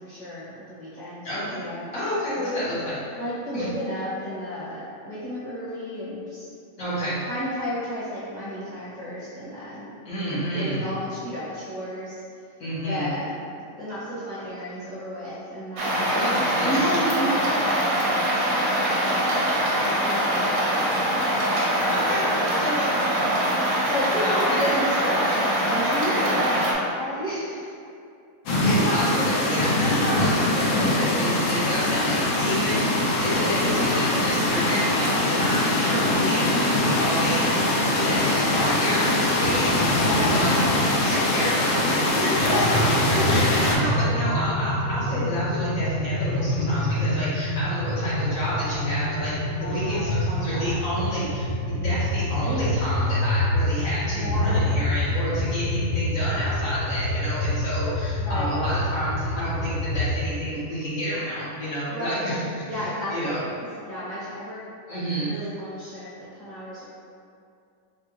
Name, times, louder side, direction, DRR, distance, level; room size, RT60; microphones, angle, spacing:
voice 1, 0.0-1.2 1.5-1.8 2.3-2.4 3.1-6.4 7.3-9.9 10.5-12.2 12.8-17.9 18.3-18.5 18.8-20.9 21.6-21.9 22.4-22.7 23.8-27.7 35.9-36.5 39.9-40.5 42.4-42.8 43.1-43.4 49.5-50.8 54.1-54.6 58.1-58.6 61.9-62.3 62.6-64.6 64.9-66.9, equal, 35° right, -11 dB, 0.8 m, -32 dB
voice 2, 1.2-1.6 1.9-3.2 3.5-3.7 6.8-7.2 10.0-10.9 12.6-13.1 16.1-17.0 21.9-22.3 22.6-22.7 24.2-24.6 28.5-32.9 33.1-39.0 39.4-42.6 43.1-49.3 49.6-51.5 51.8-62.4 62.7-63.4 64.9-65.3, equal, 70° left, -10 dB, 1.6 m, -29 dB
sound 1, 15.8-26.7, equal, 80° right, 1.1 m, -23 dB
sound 2, 28.5-43.8, left 1 dB, 85° left, 1.1 m, -22 dB
sound 3, 42.5-60.1, left 1 dB, 45° left, 1.4 m, -26 dB
4.2 x 2.3 x 2.9 m, 2.4 s
omnidirectional pair, 1.5 m